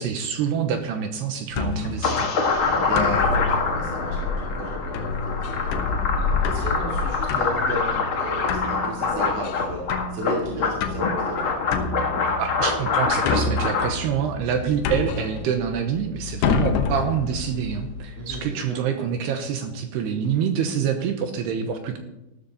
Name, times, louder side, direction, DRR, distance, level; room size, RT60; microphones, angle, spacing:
voice 1, 0.0-2.3 12.4-22.0, right 7 dB, 75° right, 6 dB, 2.8 m, -26 dB
sound 1, 1.5-18.4, left 5 dB, 70° left, 3.0 m, -29 dB
sound 2, 2.0-13.9, left 4 dB, 85° left, 1.1 m, -25 dB
voice 2, 2.7-6.1 6.4-9.8 10.1-11.6 18.2-18.8, equal, 45° right, -3 dB, 2.8 m, -33 dB
14.0 x 13.0 x 4.1 m, 0.93 s
omnidirectional pair, 5.3 m